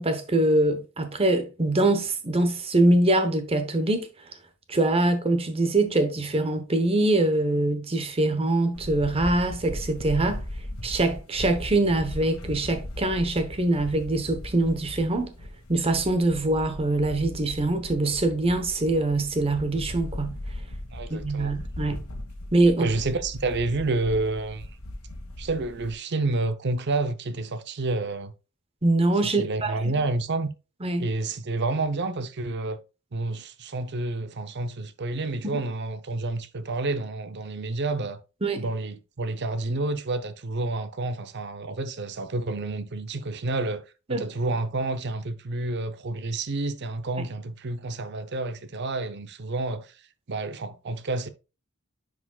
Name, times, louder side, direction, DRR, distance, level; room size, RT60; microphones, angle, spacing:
voice 1, 0.0-4.1 4.7-10.4 10.8-15.3 15.7-20.4 21.1-22.0 22.5-22.9 28.8-29.8 30.8-31.1 35.5-35.6 38.4-38.6 44.1-44.2, right 2 dB, 25° right, 0.9 m, -23 dB
sound 1, 8.7-25.9, left 1 dB, 85° left, 1.5 m, -38 dB
voice 2, 20.9-21.5 22.7-24.7 25.4-28.3 29.4-30.5 31.0-32.8 33.1-38.2 38.6-43.8 44.1-49.9 50.3-51.3, right 2 dB, 50° right, 0.6 m, -29 dB
9.8 x 5.0 x 2.3 m
head